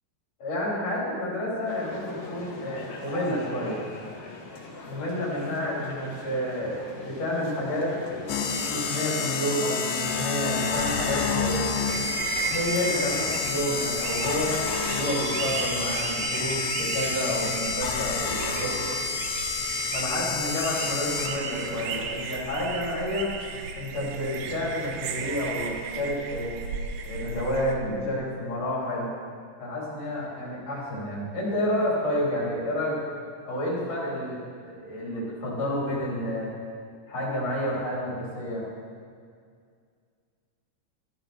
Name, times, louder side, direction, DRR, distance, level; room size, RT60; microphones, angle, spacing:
voice 1, 0.4-3.8 4.8-11.7 12.3-18.8 19.9-23.3 23.7-26.6 27.0-29.1 29.6-33.0 33.4-34.4 34.7-36.5 37.1-38.7, left 1 dB, 35° left, -7 dB, 4.6 m, -30 dB
sound 1, 1.7-15.2, left 3 dB, 60° left, 3.0 m, -42 dB
sound 2, 8.3-21.7, left 5 dB, 80° left, 3.6 m, -29 dB
sound 3, 11.9-27.8, right 6 dB, 75° right, 2.8 m, -35 dB
14.5 x 12.5 x 4.5 m, 2.2 s
omnidirectional pair, 5.5 m